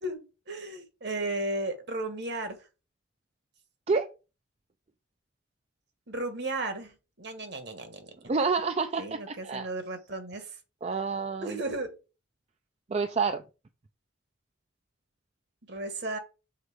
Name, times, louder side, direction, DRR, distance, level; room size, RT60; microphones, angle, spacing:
voice 1, 0.0-2.6 6.1-8.1 9.0-10.5 11.4-11.9 15.7-16.2, right 2 dB, 55° right, 1.4 m, -34 dB
voice 2, 8.3-9.7 10.8-11.6 12.9-13.4, right 4 dB, 35° right, 0.4 m, -28 dB
6.6 x 4.1 x 4.9 m
head